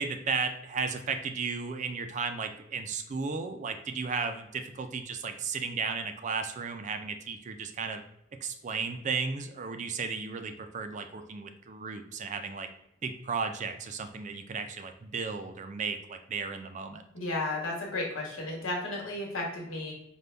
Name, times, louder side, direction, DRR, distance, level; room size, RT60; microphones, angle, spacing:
voice 1, 0.0-8.0 8.3-12.7 13.0-17.0, right 5 dB, 35° right, 7 dB, 0.4 m, -34 dB
voice 2, 17.1-19.9, left 2 dB, 85° left, -1 dB, 1.3 m, -33 dB
5.2 x 2.2 x 3.3 m, 0.80 s
head